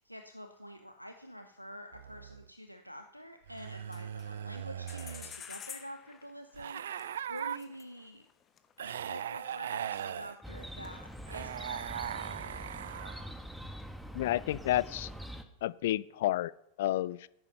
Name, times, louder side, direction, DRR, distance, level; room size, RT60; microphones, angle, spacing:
voice 1, 0.0-8.3 8.8-12.4, equal, 90° right, 7 dB, 1.0 m, -48 dB
sound 1, 1.9-2.5 3.5-5.4 6.5-7.6 8.8-10.4 11.3-13.3, right 9 dB, 65° right, 0.4 m, -39 dB
sound 2, 3.5-4.6 4.9-9.6 9.9-11.0, left 8 dB, 25° left, 1.2 m, -50 dB
Chirp tweet, 10.4-15.4, equal, ahead, 1.3 m, -44 dB
voice 2, 14.1-15.1 15.6-16.5 16.8-17.3, left 14 dB, 55° left, 21 dB, 0.4 m, -30 dB
14.0 x 11.0 x 5.7 m, 0.78 s
figure-of-eight pair, 90°, 0 cm